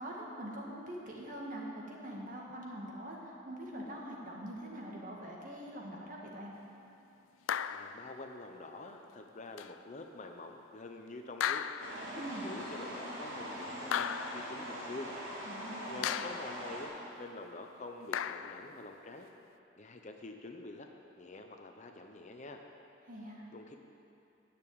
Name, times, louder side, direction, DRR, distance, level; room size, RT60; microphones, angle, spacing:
voice 1, 0.0-6.5 12.1-12.5 15.5-16.2 23.0-23.5, right 1 dB, 40° right, -2 dB, 1.8 m, -44 dB
sound 1, 7.5-8.1 9.6-9.7 11.4-12.1 13.9-14.6 16.0-16.6 18.1-18.7, left 9 dB, 85° left, 0.4 m, -35 dB
voice 2, 7.7-15.1 15.9-19.3 19.8-20.9 21.2-22.6 23.5-23.7, left 2 dB, 40° left, 4 dB, 0.7 m, -47 dB
sound 2, 11.8-16.9, equal, 85° right, 3.3 m, -42 dB
10.0 x 6.9 x 8.7 m, 2.7 s
head